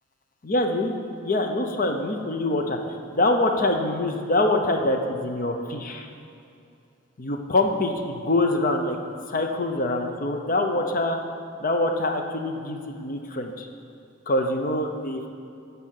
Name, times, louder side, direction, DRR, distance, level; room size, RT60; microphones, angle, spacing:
voice 1, 0.4-1.0 1.2-2.8 3.1-6.1 7.2-9.0 9.3-11.2 11.6-13.7 14.3-15.3, left 2 dB, 40° left, 4 dB, 0.7 m, -24 dB
9.5 x 5.6 x 6.5 m, 2.6 s
head